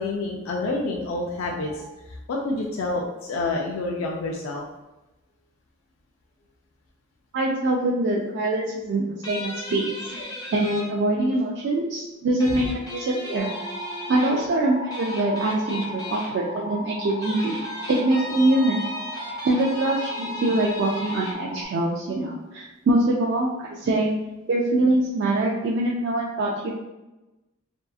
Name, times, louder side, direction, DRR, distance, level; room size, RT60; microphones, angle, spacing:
voice 1, 0.0-1.9 2.3-4.6 10.1-10.3 12.5-12.6, left 2 dB, 80° left, -1 dB, 0.4 m, -28 dB
voice 2, 7.3-10.0 10.5-13.5 14.1-17.6 17.9-18.8 19.4-24.1 24.5-26.7, right 2 dB, 55° right, -3 dB, 0.3 m, -24 dB
sound 1, 9.2-10.8 12.4-14.5 14.9-16.3 17.1-21.4, left 1 dB, 20° left, 0.5 m, -37 dB
sound 2, 13.4-21.7, equal, 25° right, 0.8 m, -36 dB
2.7 x 2.3 x 2.3 m, 1.0 s
head